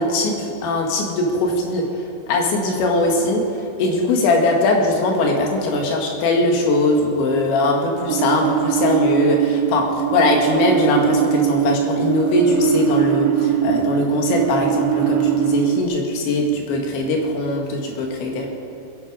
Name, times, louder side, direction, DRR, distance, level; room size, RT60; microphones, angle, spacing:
voice 1, 0.0-1.9 2.3-18.5, left 2 dB, 90° left, 1 dB, 4.1 m, -20 dB
sound 1, 8.1-15.8, right 10 dB, 75° right, 2.5 m, -21 dB
21.5 x 11.0 x 4.9 m, 2.6 s
omnidirectional pair, 5.1 m